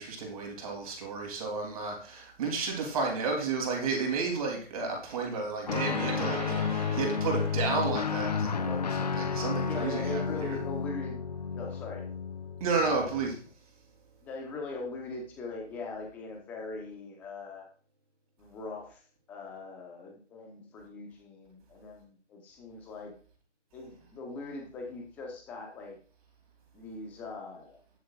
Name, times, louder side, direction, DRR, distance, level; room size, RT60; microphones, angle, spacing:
voice 1, 0.0-8.8 9.1-10.6 12.6-13.3, right 4 dB, 30° right, 1 dB, 3.0 m, -32 dB
Guitar, 5.7-13.3, left 6 dB, 35° left, 0.6 m, -32 dB
sound 1, 5.7-17.0, right 5 dB, 55° right, 2.9 m, -46 dB
voice 2, 9.6-11.2 11.5-12.1 12.8-13.3 14.2-17.6 18.4-19.0 19.3-23.1 23.7-26.0 26.7-27.8, left 3 dB, 5° left, 1 dB, 0.8 m, -41 dB
12.0 x 10.0 x 2.4 m, 0.42 s
figure-of-eight pair, 155°, 36 cm